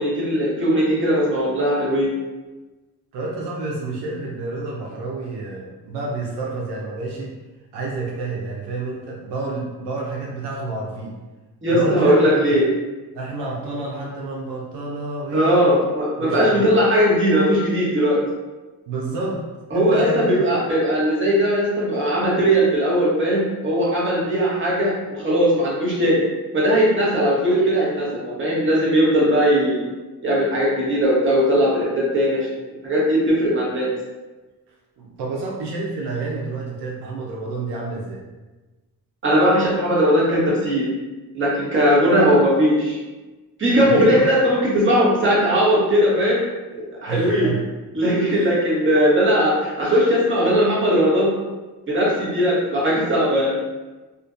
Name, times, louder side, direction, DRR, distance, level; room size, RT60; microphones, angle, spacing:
voice 1, 0.0-2.1 11.6-12.7 15.3-18.2 19.7-26.3 26.5-29.8 30.2-33.9 39.2-40.9 41.3-43.0 43.6-46.4 46.7-47.5 47.9-51.4 51.9-53.5, equal, 30° right, -6 dB, 1.0 m, -19 dB
voice 2, 3.1-7.3 7.7-11.1 11.7-12.4 13.1-15.8 16.2-16.6 18.9-19.4 19.7-20.4 35.0-38.2 43.8-44.3 47.1-47.6 48.3-48.5, right 3 dB, 80° right, -3 dB, 0.6 m, -29 dB
2.4 x 2.1 x 2.5 m, 1.2 s
cardioid pair, 80°, 40 cm